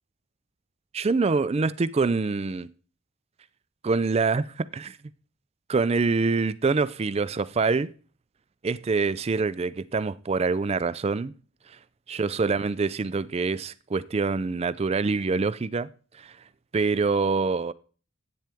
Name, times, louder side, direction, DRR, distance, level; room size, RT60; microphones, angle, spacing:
voice 1, 0.9-2.7 3.8-5.0 5.7-7.9 8.6-11.3 12.1-15.9 16.2-16.3 16.7-17.7, right 4 dB, 30° right, 0.3 m, -25 dB
10.5 x 8.9 x 3.5 m
head